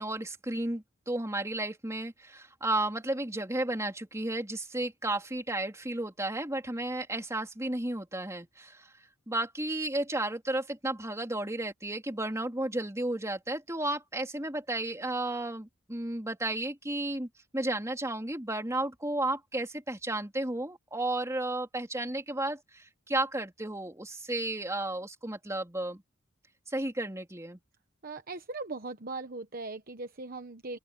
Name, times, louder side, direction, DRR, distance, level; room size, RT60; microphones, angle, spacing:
voice 1, 0.0-8.9 9.3-17.3 17.5-26.0 26.7-27.6, right 1 dB, 15° right, 3.4 m, -33 dB
voice 2, 28.0-30.8, right 3 dB, 45° right, 1.1 m, -39 dB
open air
head